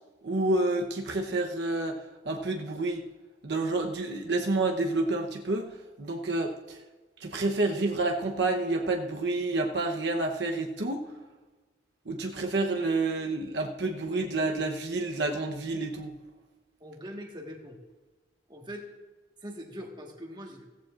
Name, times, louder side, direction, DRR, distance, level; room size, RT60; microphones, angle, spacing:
voice 1, 0.2-1.9 2.2-3.0 3.4-6.8 7.2-11.0 12.1-16.1, right 2 dB, 70° right, 2 dB, 1.0 m, -29 dB
voice 2, 16.8-17.8 18.5-18.9 19.4-20.7, equal, 25° right, 1 dB, 1.5 m, -42 dB
16.5 x 14.5 x 2.5 m, 1.2 s
head